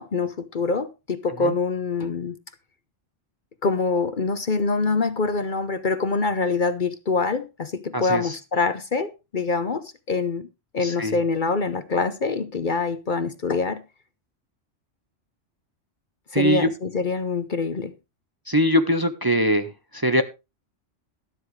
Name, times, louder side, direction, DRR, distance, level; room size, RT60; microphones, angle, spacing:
voice 1, 0.0-2.4 3.6-10.5 10.7-13.8 16.3-17.9, left 4 dB, 45° left, 0.9 m, -25 dB
voice 2, 7.9-8.4 10.8-11.2 16.3-16.7 18.5-20.2, equal, 20° right, 0.8 m, -22 dB
13.0 x 12.0 x 3.2 m
omnidirectional pair, 1.2 m